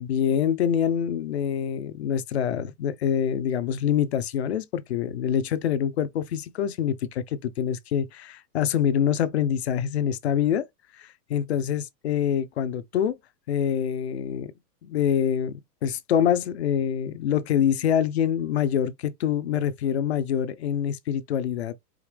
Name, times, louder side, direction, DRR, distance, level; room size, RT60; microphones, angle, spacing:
voice 1, 0.0-10.7 11.0-13.2 13.5-14.5 14.8-21.7, left 9 dB, 45° left, 0.5 m, -25 dB
5.0 x 2.8 x 3.2 m
supercardioid pair, 170°, 50 cm